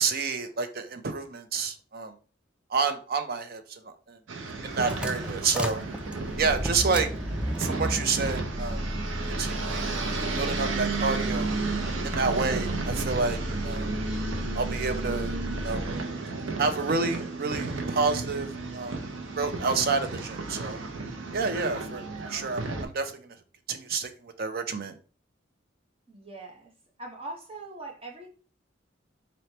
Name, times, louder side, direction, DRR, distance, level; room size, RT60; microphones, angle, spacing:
voice 1, 0.0-2.1 2.7-4.2 4.5-5.8 6.4-7.1 7.6-8.8 9.3-9.9 10.4-11.6 11.8-13.9 14.5-15.4 15.6-15.8 16.6-19.0 19.4-20.8 21.3-23.4 23.7-25.0, right 4 dB, 50° right, 0.6 m, -29 dB
sound 1, 4.3-22.9, right 3 dB, 90° right, 0.7 m, -33 dB
sound 2, 4.4-16.0, equal, 5° right, 0.3 m, -34 dB
voice 2, 26.1-26.7 27.0-28.3, right 2 dB, 30° right, 1.0 m, -41 dB
4.1 x 3.2 x 2.8 m
head